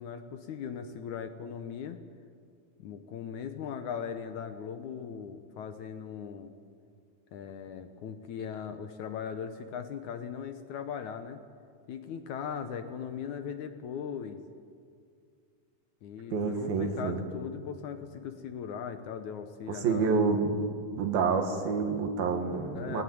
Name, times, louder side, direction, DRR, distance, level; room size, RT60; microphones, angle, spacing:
voice 1, 0.0-2.0 2.8-6.5 7.3-11.4 11.9-14.4 16.0-20.3 22.7-23.0, left 7 dB, 65° left, 8 dB, 2.2 m, -39 dB
voice 2, 16.3-17.2 19.7-20.6 20.9-23.0, right 5 dB, 80° right, 5 dB, 3.7 m, -28 dB
21.0 x 19.0 x 9.5 m, 2.3 s
omnidirectional pair, 4.1 m